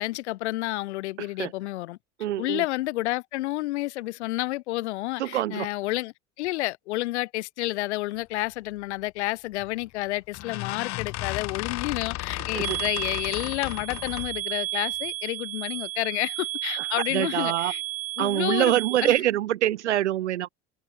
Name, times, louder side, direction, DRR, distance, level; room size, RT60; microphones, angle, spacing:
voice 1, 0.0-2.0 2.4-17.8 18.2-19.2, left 18 dB, 80° left, 2.0 m, -30 dB
voice 2, 1.2-1.5 2.2-2.6 5.2-5.7 12.5-12.8 16.8-17.7 18.2-20.5, right 13 dB, 85° right, 2.3 m, -25 dB
sound 1, 9.6-9.8 10.3-14.4, left 19 dB, 50° left, 1.0 m, -34 dB
sound 2, 12.6-19.2, right 18 dB, 45° right, 0.6 m, -33 dB
hypercardioid pair, 80°, 34 cm